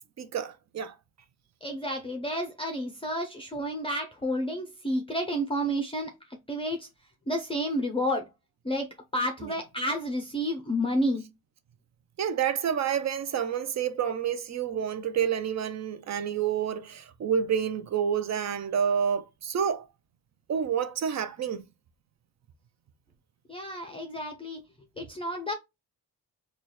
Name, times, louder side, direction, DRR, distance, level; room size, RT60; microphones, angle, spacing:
voice 1, 0.2-0.9 9.4-9.5 12.2-19.8 20.5-21.6, right 8 dB, 45° right, 0.5 m, -29 dB
voice 2, 1.6-6.1 6.5-6.9 7.3-8.3 8.6-11.2 23.5-24.6 25.0-25.5, equal, 15° left, 0.5 m, -30 dB
4.0 x 2.3 x 3.1 m
cardioid pair, 125°, 38 cm